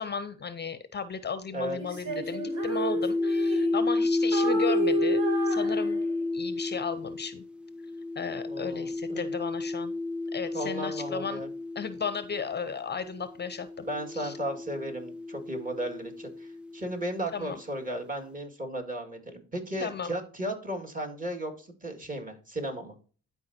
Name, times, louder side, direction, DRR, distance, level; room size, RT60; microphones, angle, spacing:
voice 1, 0.0-6.1 6.3-7.4 8.2-9.9 10.3-11.4 11.8-13.9 14.1-14.3 17.3-17.6 19.8-20.1, left 6 dB, 35° left, 12 dB, 0.6 m, -35 dB
Female singing, 1.8-4.0 4.3-6.4, right 4 dB, 70° right, 2.8 m, -33 dB
sound 1, 2.1-12.5 13.4-17.1, left 2 dB, 5° right, 0.3 m, -31 dB
voice 2, 8.5-9.3 10.5-11.5 13.8-22.9, right 1 dB, 25° right, 2 dB, 2.1 m, -35 dB
11.5 x 4.7 x 2.8 m, 0.38 s
cardioid pair, 90°, 30 cm